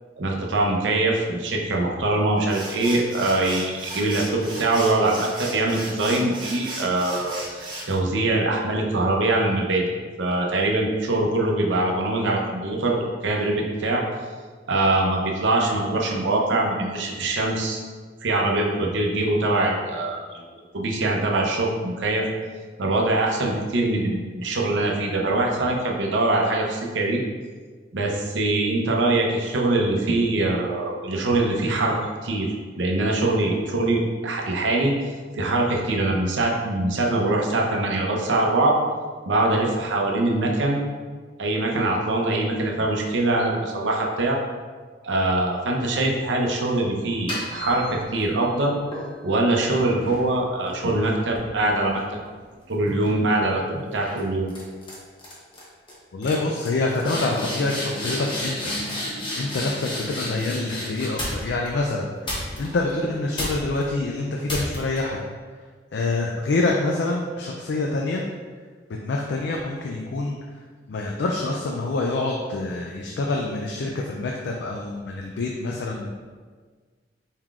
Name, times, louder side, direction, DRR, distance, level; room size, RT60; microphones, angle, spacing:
voice 1, 0.2-9.9 10.2-14.0 14.7-17.8 18.2-20.4 20.7-22.3 22.8-27.2 27.9-34.9 35.3-38.8 39.2-40.8 41.4-44.4 45.0-48.8 49.2-52.0 52.7-54.5, right 2 dB, 85° right, 0 dB, 0.6 m, -23 dB
sound 1, 2.4-7.9, right 1 dB, 25° right, 0.8 m, -36 dB
sound 2, 47.1-48.3 48.9-52.5 52.9-53.3 54.0-54.2 54.5-54.9 55.2-55.6 55.9-56.0 56.2-61.7 62.2-62.9 63.3-63.8 64.5-65.0, left 1 dB, 25° left, 0.9 m, -32 dB
voice 2, 56.1-58.7 59.4-65.2 65.9-68.2 69.0-70.4 70.9-76.1, left 2 dB, 65° left, 0 dB, 0.4 m, -26 dB
4.4 x 3.7 x 2.4 m, 1.5 s
head